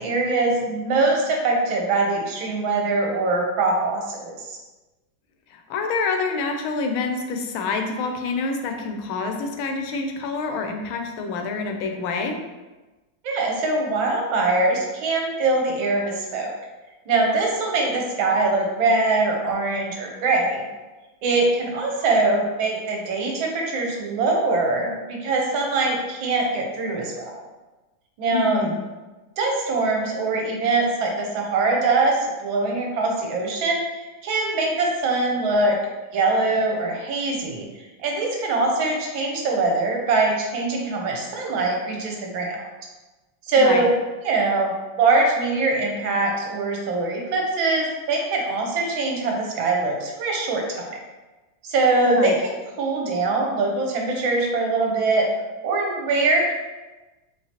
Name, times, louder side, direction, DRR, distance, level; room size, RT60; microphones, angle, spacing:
voice 1, 0.0-4.6 13.2-16.5 17.1-20.7 21.2-27.3 28.2-28.6 29.4-35.8 36.1-37.7 38.0-42.7 43.4-44.0 44.2-51.0 51.6-52.3 52.8-55.3 55.6-56.5, right 3 dB, 75° right, 0 dB, 1.5 m, -22 dB
voice 2, 5.5-12.4 28.3-28.8 43.6-43.9 52.0-52.4, left 4 dB, 90° left, 4 dB, 1.4 m, -27 dB
4.8 x 3.0 x 2.8 m, 1.2 s
omnidirectional pair, 2.2 m